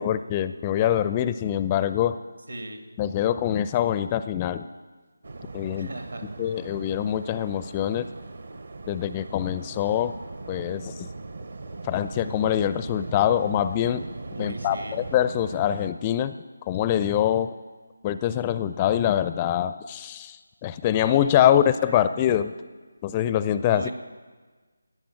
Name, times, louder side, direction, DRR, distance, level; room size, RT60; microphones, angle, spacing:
voice 1, 0.0-2.2 3.0-4.6 5.5-5.9 6.4-8.1 8.9-10.1 10.5-11.1 11.9-14.0 14.4-16.3 16.7-17.5 18.0-20.4 20.6-22.5 23.0-23.8, left 11 dB, 20° left, 13 dB, 0.4 m, -24 dB
voice 2, 2.5-2.9 5.7-6.3 14.3-15.0 21.8-22.4 23.7-23.9, right 1 dB, 75° right, 5 dB, 2.4 m, -38 dB
Waves surf, 5.2-15.9, right 3 dB, 55° right, 1.0 m, -39 dB
17.0 x 9.7 x 8.7 m, 1.4 s
figure-of-eight pair, 155°, 0 cm